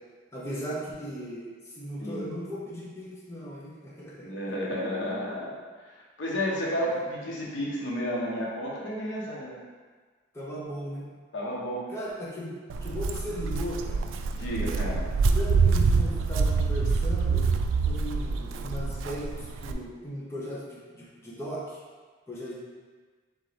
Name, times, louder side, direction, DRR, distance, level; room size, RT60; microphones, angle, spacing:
voice 1, 0.3-4.3 10.3-11.1 11.9-12.5 12.8-14.1 15.2-17.5 17.8-21.8 22.3-22.6, equal, 15° left, -7 dB, 0.8 m, -37 dB
voice 2, 4.2-9.6 11.3-11.9 14.3-15.1, equal, 80° left, -4 dB, 0.9 m, -32 dB
Walk footsteps, 12.7-19.7, right 4 dB, 90° right, 0.3 m, -26 dB
3.9 x 3.6 x 3.3 m, 1.4 s
head